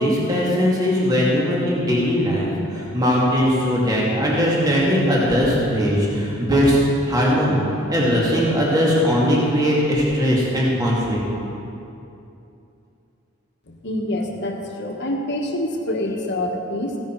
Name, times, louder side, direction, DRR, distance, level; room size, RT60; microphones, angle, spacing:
voice 1, 0.0-6.8 7.1-11.2, equal, 20° right, -5 dB, 2.3 m, -19 dB
voice 2, 13.7-17.0, left 1 dB, 60° left, 1 dB, 1.4 m, -26 dB
15.5 x 10.5 x 4.7 m, 2.8 s
head